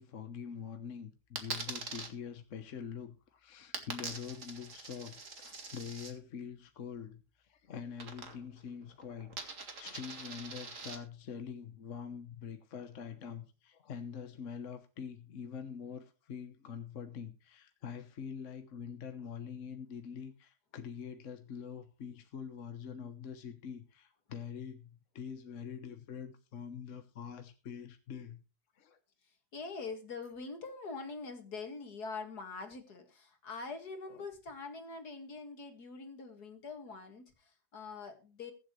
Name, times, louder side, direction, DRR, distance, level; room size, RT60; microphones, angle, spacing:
voice 1, 0.0-28.4 28.8-29.0 34.1-34.2, left 7 dB, 55° left, 1.3 m, -45 dB
Coin (dropping), 1.4-2.1 3.7-6.1 8.0-8.6 8.9-11.0, right 3 dB, 50° right, 2.3 m, -43 dB
voice 2, 29.5-38.5, left 4 dB, 75° left, 2.7 m, -44 dB
22.0 x 7.7 x 3.2 m
omnidirectional pair, 1.7 m